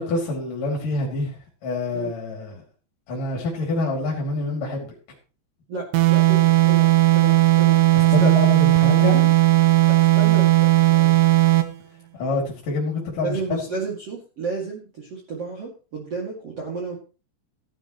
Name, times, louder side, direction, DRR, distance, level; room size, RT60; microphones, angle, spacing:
voice 1, 0.0-1.3 1.6-2.5 3.1-4.9 8.1-9.3 12.2-13.6, left 3 dB, 50° left, -2 dB, 4.0 m, -26 dB
voice 2, 5.7-8.4 9.9-11.2 13.2-17.0, right 4 dB, 40° right, -2 dB, 2.7 m, -32 dB
sound 1, 5.9-11.8, right 18 dB, 90° right, 3.5 m, -16 dB
14.5 x 11.5 x 3.1 m, 0.34 s
omnidirectional pair, 5.2 m